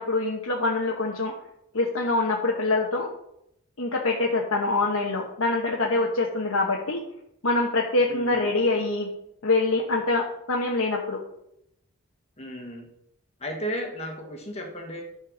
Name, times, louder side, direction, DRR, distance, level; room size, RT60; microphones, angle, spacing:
voice 1, 0.0-1.3 1.7-3.1 3.8-7.0 7.4-9.1 9.4-11.2, left 2 dB, 75° left, -1 dB, 1.2 m, -25 dB
voice 2, 8.1-8.5 12.4-12.9 13.4-15.1, equal, 30° left, 2 dB, 1.5 m, -34 dB
11.0 x 4.5 x 6.3 m, 0.78 s
head